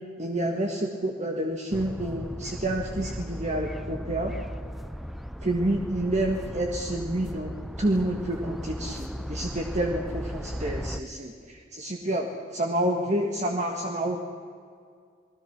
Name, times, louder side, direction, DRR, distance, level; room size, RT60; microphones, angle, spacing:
voice 1, 0.2-4.3 5.4-7.5 7.8-12.3 12.5-14.2, right 1 dB, 40° right, 2 dB, 1.8 m, -28 dB
sound 1, 1.7-11.0, equal, ahead, 0.7 m, -36 dB
29.0 x 20.0 x 6.1 m, 2.2 s
head